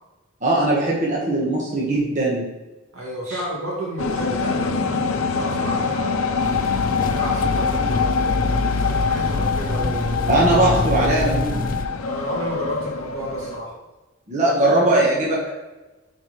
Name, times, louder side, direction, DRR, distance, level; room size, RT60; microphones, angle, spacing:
voice 1, 0.4-2.5 10.3-11.6 14.3-15.5, right 2 dB, 35° right, -4 dB, 1.3 m, -20 dB
voice 2, 2.9-10.4 12.1-13.8, equal, 85° right, -3 dB, 2.3 m, -32 dB
sound 1, 4.0-13.6, left 5 dB, 90° left, 0.6 m, -24 dB
sound 2, 6.4-11.8, left 2 dB, 40° left, 0.4 m, -26 dB
10.0 x 4.4 x 3.2 m, 1.1 s
head